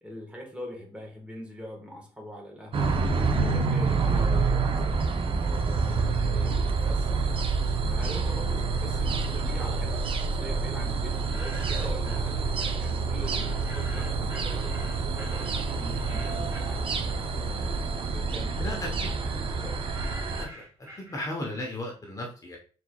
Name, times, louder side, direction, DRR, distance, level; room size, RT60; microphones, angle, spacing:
voice 1, 0.0-3.0 3.4-7.3 7.9-17.3 18.1-19.8, equal, 10° right, -1 dB, 1.4 m, -43 dB
sound 1, 2.7-20.4, right 4 dB, 45° right, 0.6 m, -27 dB
sound 2, 11.1-12.3 13.3-17.5 17.9-21.6, equal, 25° right, 2.0 m, -47 dB
voice 2, 18.6-19.1 20.3-20.6 21.0-22.6, left 1 dB, 25° left, -1 dB, 1.0 m, -35 dB
4.6 x 4.0 x 2.3 m, 0.40 s
cardioid pair, 100°, 13 cm